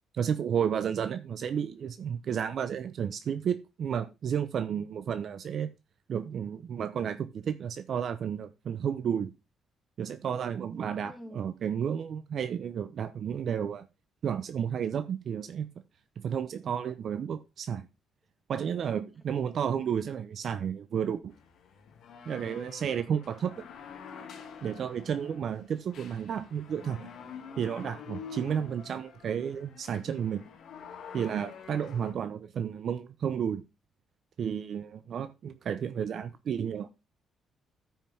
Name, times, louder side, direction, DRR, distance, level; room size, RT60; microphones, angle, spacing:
voice 1, 0.1-5.7 6.1-9.3 10.0-13.9 14.2-15.7 16.2-17.9 18.5-21.3 22.3-23.7 24.6-27.1 27.6-30.4 31.1-33.6 34.4-36.9, right 8 dB, 60° right, 0.9 m, -32 dB
voice 2, 10.7-11.5 28.2-28.7, equal, ahead, 2.9 m, -49 dB
sound 1, 21.3-32.1, left 6 dB, 70° left, 2.3 m, -47 dB
13.5 x 5.9 x 3.5 m
cardioid pair, 90°, 0 cm